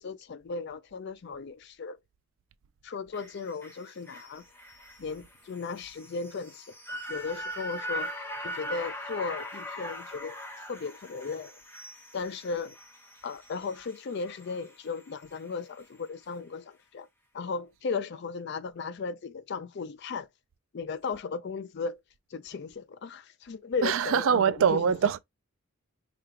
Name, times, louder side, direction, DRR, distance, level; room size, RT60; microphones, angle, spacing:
voice 1, 0.0-2.0 2.8-4.4 5.0-8.1 8.4-11.6 12.1-12.8 13.2-17.1 17.3-20.3 20.7-22.0 22.3-24.8, left 4 dB, 50° left, 0.4 m, -36 dB
sound 1, 3.1-15.5 15.8-15.9, equal, 10° left, 0.7 m, -41 dB
voice 2, 23.8-25.2, right 7 dB, 65° right, 0.3 m, -23 dB
5.0 x 2.2 x 3.1 m
head